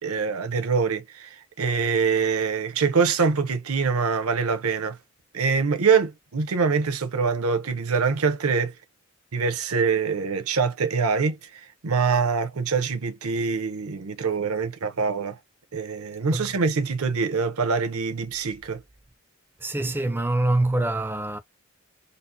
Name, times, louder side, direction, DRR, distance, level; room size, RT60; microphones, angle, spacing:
voice 1, 0.0-5.0 5.3-8.7 9.3-15.4 15.7-18.8, right 5 dB, 80° right, 0.7 m, -24 dB
voice 2, 19.6-21.4, right 2 dB, 10° right, 0.4 m, -25 dB
4.0 x 2.0 x 2.6 m
head